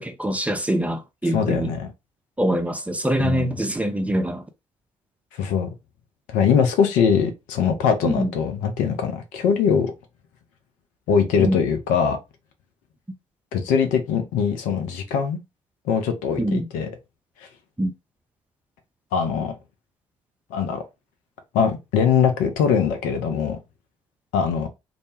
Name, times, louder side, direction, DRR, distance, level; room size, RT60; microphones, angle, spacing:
voice 1, 0.0-1.7 2.4-4.4 8.1-8.3 11.4-11.6 16.4-16.7 17.8-17.9, right 1 dB, 10° right, 0.4 m, -24 dB
voice 2, 1.3-1.9 3.2-3.5 5.4-5.7 6.3-9.9 11.1-12.2 13.5-15.4 15.9-16.9 19.1-19.5 20.5-20.8 21.5-23.6 24.3-24.7, left 7 dB, 60° left, 0.5 m, -22 dB
2.0 x 2.0 x 3.0 m
figure-of-eight pair, 45°, 15 cm